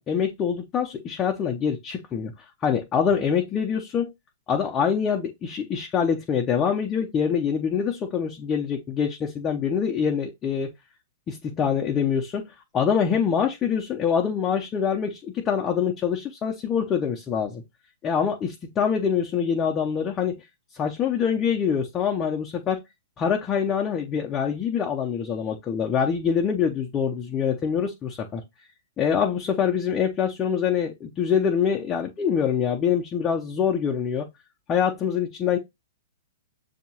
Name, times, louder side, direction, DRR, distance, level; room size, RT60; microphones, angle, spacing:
voice 1, 0.0-2.3 2.6-4.1 4.5-10.7 11.3-12.5 12.7-17.6 18.0-20.5 20.7-22.8 23.2-28.4 29.0-34.3 34.7-35.6, left 7 dB, 25° left, 0.6 m, -25 dB
6.6 x 2.8 x 2.8 m
hypercardioid pair, 115°, 0 cm